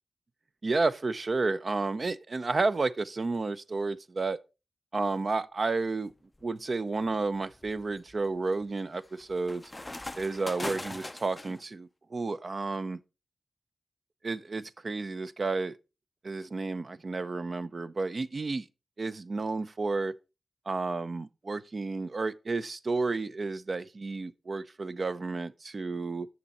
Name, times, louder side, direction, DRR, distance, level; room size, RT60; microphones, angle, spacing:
voice 1, 0.6-4.4 4.9-6.1 6.4-9.6 10.2-13.0 14.2-15.8 16.2-18.7 19.0-20.1 20.7-26.3, right 3 dB, 50° right, 0.5 m, -31 dB
sound 1, 6.1-6.5 7.0-11.7, left 1 dB, 20° left, 0.4 m, -41 dB
9.5 x 6.5 x 4.2 m
wide cardioid pair, 80°, 0 cm